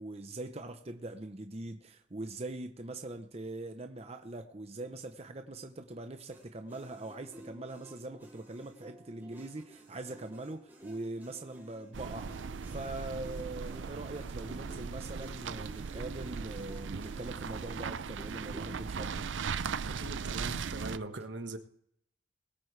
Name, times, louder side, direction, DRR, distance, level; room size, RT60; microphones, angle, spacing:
voice 1, 0.0-19.3, right 2 dB, 35° right, 0.8 m, -42 dB
sound 1, 6.3-18.8, right 1 dB, 10° right, 4.7 m, -53 dB
sound 2, 11.9-21.0, right 5 dB, 90° right, 0.5 m, -38 dB
voice 2, 19.9-21.6, right 2 dB, 70° right, 1.4 m, -40 dB
21.5 x 8.6 x 3.3 m
head